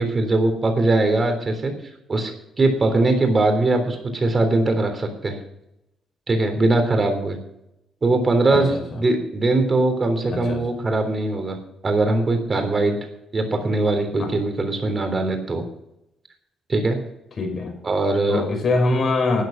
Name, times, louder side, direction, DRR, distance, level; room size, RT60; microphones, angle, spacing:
voice 1, 0.0-1.7 2.1-5.4 6.3-7.4 8.0-11.6 11.8-13.0 13.3-15.6 16.7-17.0 17.8-18.4, right 2 dB, 35° right, 6 dB, 3.5 m, -21 dB
voice 2, 10.3-10.6 14.2-14.3 17.4-17.7 18.3-19.4, left 3 dB, 45° left, 3 dB, 5.3 m, -23 dB
13.0 x 9.3 x 6.3 m, 0.82 s
cardioid pair, 90°, 0 cm